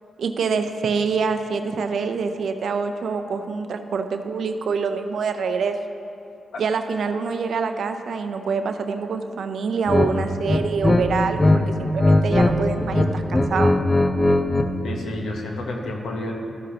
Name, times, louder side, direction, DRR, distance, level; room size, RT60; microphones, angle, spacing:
voice 1, 0.2-5.8 6.6-13.7, right 5 dB, 75° right, 7 dB, 0.5 m, -25 dB
sound 1, 9.9-10.1 10.5-11.6 11.9-12.5 12.8-14.7, left 2 dB, 35° left, 0.7 m, -18 dB
voice 2, 14.8-16.3, left 2 dB, 75° left, 1 dB, 1.1 m, -30 dB
13.5 x 6.4 x 2.9 m, 2.6 s
supercardioid pair, 50°, 0 cm